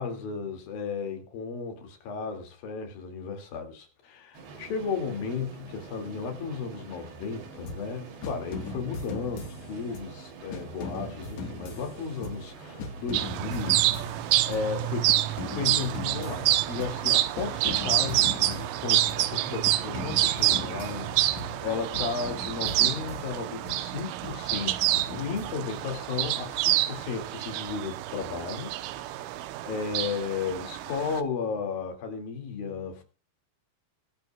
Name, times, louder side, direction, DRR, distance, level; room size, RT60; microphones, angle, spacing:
voice 1, 0.0-24.8 25.1-28.7 29.1-33.0, left 5 dB, 55° left, 3.5 m, -34 dB
sound 1, 4.3-23.2, right 5 dB, 60° right, 4.9 m, -46 dB
sound 2, 7.7-7.9 8.2-10.2 10.5-12.5 12.8-14.7 15.1-17.1 17.4-19.3 19.7-21.7 21.9-23.8 24.2-25.9, left 2 dB, 70° left, 1.7 m, -40 dB
sound 3, 13.1-31.2, right 15 dB, 80° right, 3.2 m, -28 dB
22.5 x 9.5 x 2.3 m
omnidirectional pair, 5.7 m